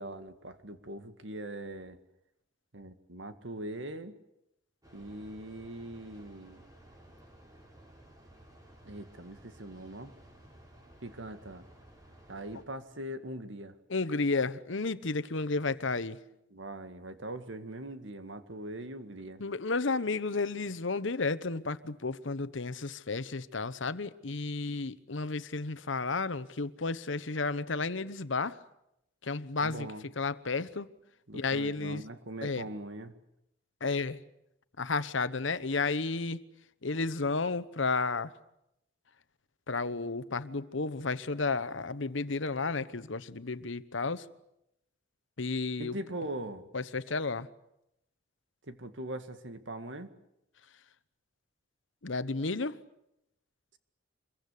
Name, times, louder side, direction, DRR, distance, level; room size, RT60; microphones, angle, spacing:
voice 1, 0.0-2.0 2.7-4.1 4.9-6.7 8.9-10.2 11.0-11.7 12.3-13.8 16.5-19.4 29.6-30.1 31.3-33.1 45.8-46.7 48.6-50.1, right 1 dB, 75° right, 2.0 m, -41 dB
Train, 4.8-12.6, right 1 dB, 20° right, 5.4 m, -56 dB
voice 2, 13.9-16.2 19.4-28.6 29.2-29.9 30.2-30.9 31.3-32.0 32.4-32.7 33.8-34.2 34.8-36.4 36.8-38.3 39.7-44.3 45.4-46.0 46.7-47.5 52.0-52.8, left 3 dB, 80° left, 1.1 m, -32 dB
26.0 x 22.5 x 8.4 m
head